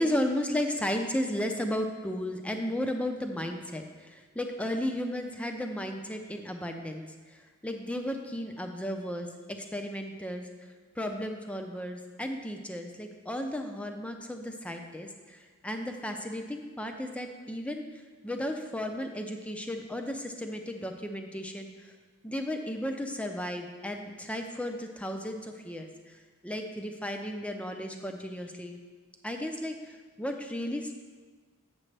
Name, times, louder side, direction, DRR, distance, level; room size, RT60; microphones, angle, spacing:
voice 1, 0.0-10.5 11.0-17.9 18.2-21.9 22.2-28.8 29.2-31.0, left 1 dB, 5° left, 4 dB, 0.5 m, -34 dB
7.5 x 6.9 x 3.3 m, 1.4 s
head